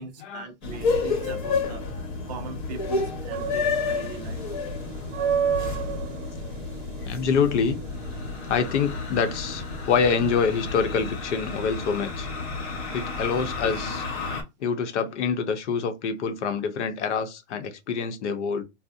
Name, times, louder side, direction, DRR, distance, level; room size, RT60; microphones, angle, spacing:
voice 1, 0.0-1.9 2.3-4.4, right 5 dB, 35° right, 0.5 m, -40 dB
sound 1, 0.6-14.4, left 4 dB, 40° left, 0.9 m, -31 dB
sound 2, 3.3-14.0, right 7 dB, 75° right, 0.7 m, -34 dB
voice 2, 7.0-7.8 8.5-12.3 12.9-14.0 14.6-18.6, left 6 dB, 65° left, 0.7 m, -26 dB
2.7 x 2.0 x 2.4 m
hypercardioid pair, 150°, 38 cm